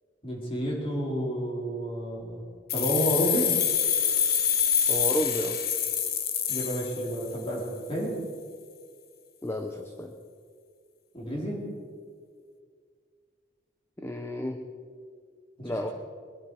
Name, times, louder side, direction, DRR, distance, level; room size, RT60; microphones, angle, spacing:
voice 1, 0.2-2.4 2.7-3.5 6.5-8.2 11.1-11.6 15.6-15.9, equal, 30° left, -3 dB, 4.0 m, -30 dB
sound 1, 2.7-7.5, left 8 dB, 55° left, 1.1 m, -26 dB
voice 2, 4.9-5.6 9.4-10.1 14.0-14.6 15.6-15.9, equal, 15° left, 4 dB, 0.8 m, -31 dB
21.5 x 10.5 x 4.8 m, 2.1 s
head